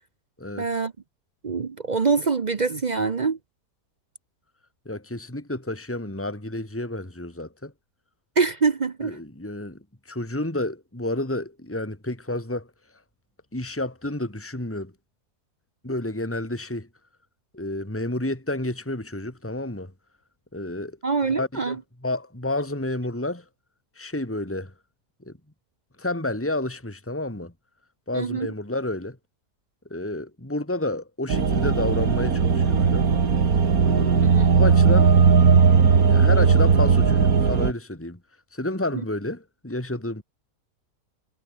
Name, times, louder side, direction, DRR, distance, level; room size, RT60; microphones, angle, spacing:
voice 1, 0.6-0.9 1.4-3.4 8.4-9.2 21.0-21.8 28.1-28.5 34.2-34.5, right 4 dB, 40° right, 0.6 m, -24 dB
voice 2, 4.8-7.7 9.0-12.7 13.5-14.9 15.8-16.9 17.5-19.9 20.5-21.0 21.3-23.4 23.9-24.7 25.2-25.4 26.0-27.5 28.1-29.2 29.9-33.1 33.8-35.2 36.1-38.2 38.5-40.2, left 1 dB, 10° left, 2.9 m, -30 dB
sound 1, 31.3-37.7, right 5 dB, 60° right, 2.4 m, -18 dB
omnidirectional pair, 1.7 m